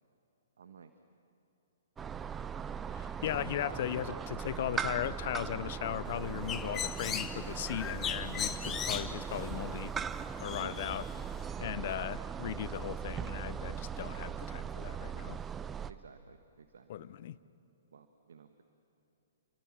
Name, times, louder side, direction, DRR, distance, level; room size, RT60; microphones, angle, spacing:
voice 1, 0.6-0.9 3.6-4.2 10.6-10.8 15.9-17.1 17.9-18.6, right 6 dB, 60° right, 1.4 m, -52 dB
sound 1, 2.0-15.9, right 7 dB, 15° right, 0.6 m, -39 dB
voice 2, 2.9-9.9 10.4-11.0 11.6-15.4 16.9-17.4, left 12 dB, 45° left, 0.8 m, -37 dB
Bird, 6.1-11.5, left 8 dB, 15° left, 1.1 m, -39 dB
30.0 x 24.0 x 7.4 m
figure-of-eight pair, 115°, 0 cm